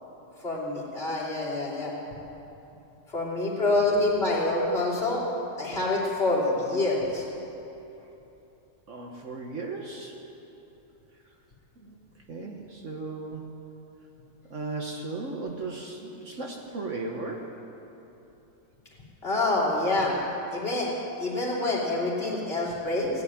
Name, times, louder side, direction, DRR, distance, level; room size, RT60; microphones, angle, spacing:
voice 1, 0.4-1.9 3.1-5.2 5.6-7.3 19.2-20.2 20.5-20.9 21.2-23.1, left 2 dB, 35° left, -6 dB, 3.4 m, -26 dB
voice 2, 8.9-10.1 11.8-12.0 12.3-13.4 14.5-17.5, right 3 dB, 50° right, 1 dB, 1.4 m, -36 dB
16.5 x 8.6 x 9.9 m, 3.0 s
omnidirectional pair, 1.7 m